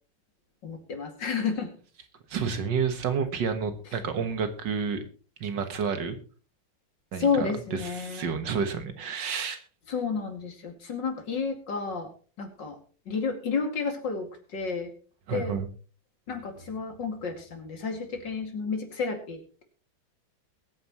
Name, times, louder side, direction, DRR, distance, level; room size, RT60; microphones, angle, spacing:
voice 1, 0.6-1.7 7.2-8.3 9.9-12.1 12.4-12.8 13.1-14.9 15.3-15.6 16.3-19.6, left 5 dB, 70° left, 5 dB, 3.0 m, -31 dB
voice 2, 2.3-5.1 5.4-6.2 7.1-7.3 7.8-9.6 15.3-15.7, right 6 dB, 70° right, 9 dB, 2.0 m, -29 dB
22.0 x 9.2 x 3.0 m, 0.37 s
omnidirectional pair, 2.0 m